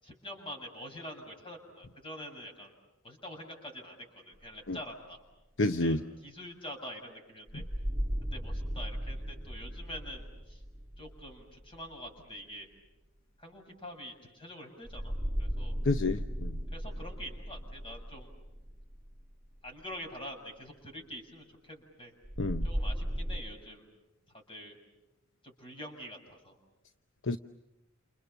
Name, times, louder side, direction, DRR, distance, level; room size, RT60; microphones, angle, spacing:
voice 1, 0.0-2.7 3.0-5.2 5.8-7.6 8.3-10.6 11.0-12.7 13.4-15.1 15.4-15.8 16.7-18.3 19.6-22.1 22.6-23.9 24.5-24.8 25.4-26.5, equal, 25° left, 3 dB, 7.0 m, -45 dB
sound 1, 4.3-4.5 7.5-12.2 14.8-19.9 22.2-23.4, equal, 30° right, 2.8 m, -36 dB
voice 2, 5.6-6.0 15.9-16.6 22.4-22.7 27.3-27.4, left 2 dB, 65° left, 9 dB, 0.9 m, -29 dB
30.0 x 28.5 x 7.0 m, 0.94 s
head